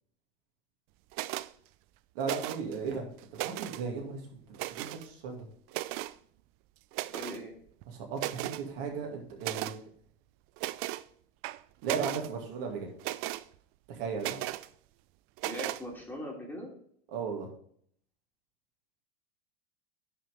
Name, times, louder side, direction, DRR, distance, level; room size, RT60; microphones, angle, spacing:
sound 1, 1.1-1.5 2.2-2.8 3.2-3.8 4.5-5.1 5.7-6.2 6.9-7.4 7.8-7.9 8.2-8.6 9.4-9.8 10.6-11.0 11.4-12.3 13.0-13.4 14.2-14.7 15.4-15.8, right 17 dB, 45° right, 0.5 m, -36 dB
voice 1, 2.1-3.0 3.4-5.5 7.9-9.8 11.8-12.9 13.9-14.4 17.1-17.5, right 5 dB, 60° right, 1 dB, 2.5 m, -36 dB
voice 2, 7.1-7.5 15.4-16.7, equal, 5° left, -2 dB, 3.1 m, -40 dB
10.0 x 5.7 x 3.7 m, 0.62 s
hypercardioid pair, 105°, 32 cm